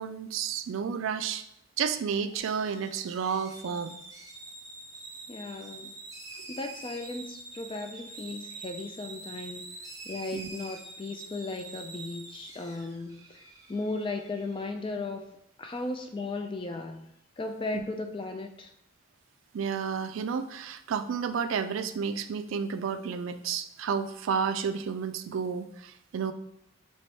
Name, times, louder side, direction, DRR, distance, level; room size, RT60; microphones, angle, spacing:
voice 1, 0.0-1.4 1.8-4.0 10.3-10.5 17.7-17.8 19.5-26.3, right 6 dB, 70° right, 10 dB, 0.3 m, -31 dB
sound 1, 2.4-14.6, right 3 dB, 15° right, 0.6 m, -46 dB
voice 2, 5.3-5.9 6.5-9.7 10.0-15.2 15.6-17.1 17.4-18.7, left 2 dB, 25° left, 5 dB, 0.4 m, -36 dB
4.5 x 3.0 x 3.2 m, 0.80 s
head